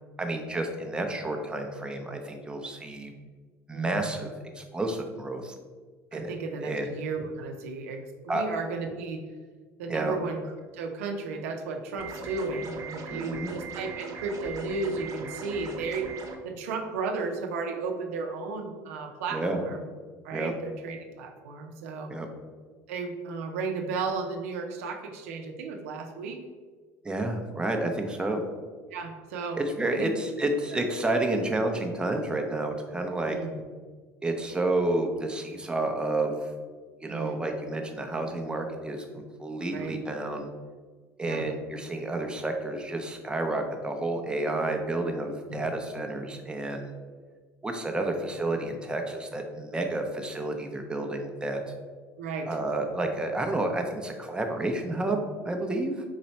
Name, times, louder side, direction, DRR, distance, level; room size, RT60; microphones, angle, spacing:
voice 1, 0.2-3.1 3.7-5.5 6.1-6.3 6.6-6.9 8.3-8.4 9.9-10.2 13.1-13.5 19.3-19.6 20.3-20.5 22.1-22.3 27.0-28.4 29.5-33.4 34.2-36.4 37.0-39.0 39.4-40.5 41.2-46.9 47.6-51.6 52.5-56.0, right 2 dB, 10° right, 3 dB, 0.6 m, -30 dB
voice 2, 3.7-4.1 6.1-9.2 9.8-10.4 10.7-16.1 16.4-19.8 20.2-22.1 22.9-26.4 28.9-29.6 29.9-30.1 30.7-30.9 33.2-33.6 37.1-37.4 39.7-40.0 41.2-41.5 45.5-45.7 52.2-52.5, right 4 dB, 90° right, 4 dB, 0.6 m, -34 dB
sound 1, 12.0-16.4, right 4 dB, 50° right, 0.7 m, -39 dB
4.0 x 3.0 x 4.3 m, 1.5 s
supercardioid pair, 95°, 7 cm